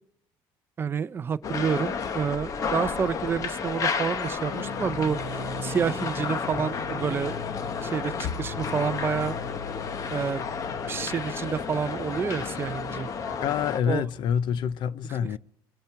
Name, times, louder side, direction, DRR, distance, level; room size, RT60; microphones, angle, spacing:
voice 1, 0.8-7.3 7.8-9.4 10.1-10.5 10.9-13.1 13.9-14.1, right 7 dB, 25° right, 0.4 m, -29 dB
sound 1, 1.4-13.8, left 6 dB, 35° left, 0.8 m, -32 dB
sound 2, 4.5-14.7, left 2 dB, 75° left, 4.7 m, -40 dB
voice 2, 13.4-15.4, left 8 dB, 55° left, 0.5 m, -27 dB
23.5 x 8.7 x 4.6 m
cardioid pair, 150°, 9 cm